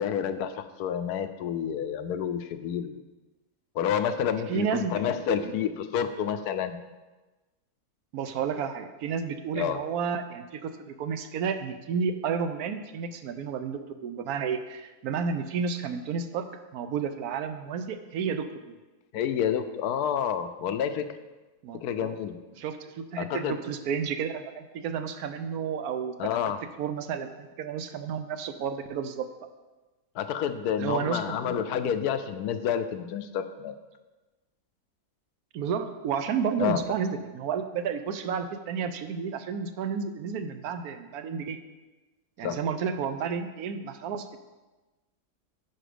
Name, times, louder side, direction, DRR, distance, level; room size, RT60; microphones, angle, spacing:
voice 1, 0.0-3.0 3.7-6.8 9.5-9.8 19.1-21.1 21.7-22.4 23.2-23.5 26.2-26.6 30.2-33.8 36.6-36.8 42.4-42.6, left 8 dB, 75° left, 10 dB, 1.1 m, -29 dB
voice 2, 4.5-5.0 5.3-5.5 8.1-16.5 16.7-18.7 21.6-22.1 22.6-26.2 26.8-29.3 30.8-32.0 35.5-41.6 42.4-44.4, right 6 dB, 75° right, 9 dB, 1.0 m, -31 dB
10.0 x 4.9 x 5.0 m, 1.2 s
omnidirectional pair, 1.7 m